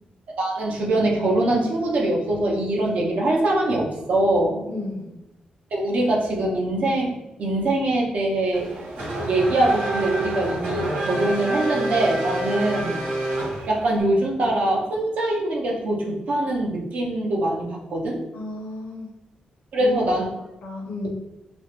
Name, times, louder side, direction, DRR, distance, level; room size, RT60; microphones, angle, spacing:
voice 1, 0.4-4.6 5.7-8.7 9.2-13.0 13.7-18.2 19.7-20.3, right 1 dB, 60° right, -2 dB, 0.6 m, -23 dB
voice 2, 4.7-5.1 18.3-19.1 19.8-20.0 20.6-21.1, left 2 dB, 85° left, -2 dB, 0.6 m, -33 dB
Race car auto racing / Accelerating revving vroom, 8.5-14.0, right 2 dB, 80° right, 0.9 m, -27 dB
2.4 x 2.0 x 2.9 m, 0.95 s
wide cardioid pair, 160°, 3 cm